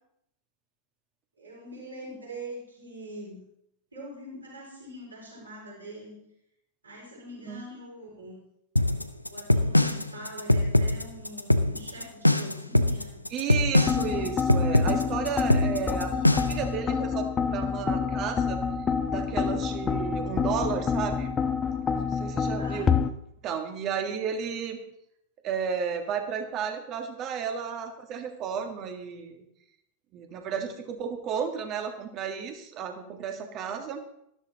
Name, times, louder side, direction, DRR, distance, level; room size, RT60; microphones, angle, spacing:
voice 1, 1.4-3.5 3.9-6.2 6.8-8.4 9.3-13.2 22.4-22.9, right 1 dB, 75° right, -4 dB, 5.3 m, -43 dB
sound 1, 8.8-16.7, left 1 dB, 85° left, 0.5 m, -23 dB
voice 2, 13.3-18.6 19.1-21.4 21.9-23.0 23.4-24.8 25.4-29.5 30.1-34.0, right 7 dB, 35° right, 5 dB, 1.7 m, -33 dB
sound 2, 13.8-23.1, left 6 dB, 20° left, 0.7 m, -28 dB
13.0 x 12.5 x 3.0 m, 0.77 s
figure-of-eight pair, 90°, 0 cm